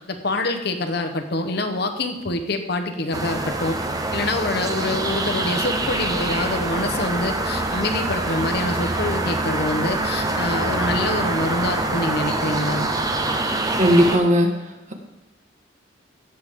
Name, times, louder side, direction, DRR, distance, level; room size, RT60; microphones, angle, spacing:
voice 1, 0.1-3.8 4.1-12.9, left 2 dB, 60° left, 6 dB, 1.1 m, -26 dB
sound 1, 3.1-14.2, right 2 dB, 20° right, 0.9 m, -25 dB
voice 2, 13.8-14.5, equal, 40° right, 3 dB, 1.5 m, -16 dB
16.5 x 6.9 x 3.7 m, 1.0 s
head